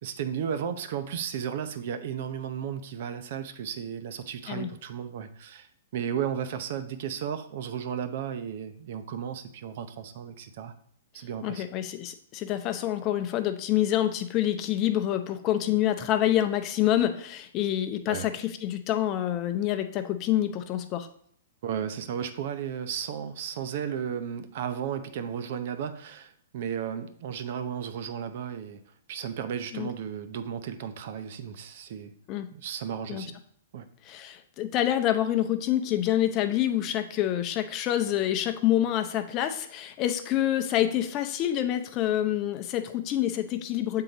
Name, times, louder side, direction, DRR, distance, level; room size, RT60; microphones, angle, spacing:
voice 1, 0.0-5.7 5.9-10.7 11.1-11.6 18.1-18.3 21.6-28.8 29.1-32.1 32.5-33.4 33.7-33.9, right 8 dB, 55° right, 10 dB, 0.7 m, -34 dB
voice 2, 11.4-21.1 29.7-29.9 32.3-32.5 33.1-33.3 34.0-44.0, left 12 dB, 30° left, 8 dB, 0.6 m, -27 dB
7.6 x 3.8 x 4.0 m, 0.64 s
hypercardioid pair, 140°, 0 cm